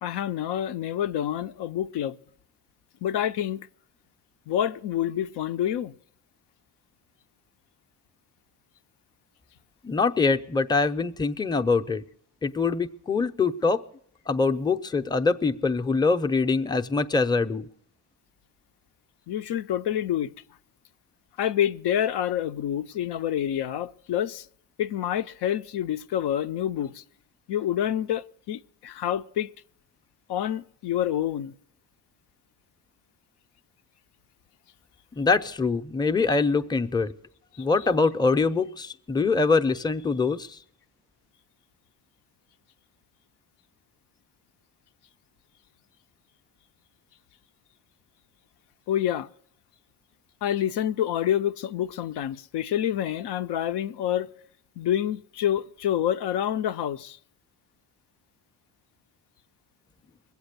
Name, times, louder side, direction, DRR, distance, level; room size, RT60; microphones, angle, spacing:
voice 1, 0.0-2.2 3.0-3.6 4.5-6.0 19.3-20.3 21.4-24.5 24.8-27.0 27.5-29.5 30.3-31.5 36.3-36.4 37.5-37.6 48.9-49.3 50.4-54.3 54.8-57.2, left 10 dB, 85° left, 0.5 m, -27 dB
voice 2, 9.8-12.0 12.4-13.8 14.3-17.7 35.2-37.1 37.6-40.6, left 4 dB, 10° left, 0.5 m, -24 dB
21.0 x 8.1 x 6.6 m
cardioid pair, 85°, 39 cm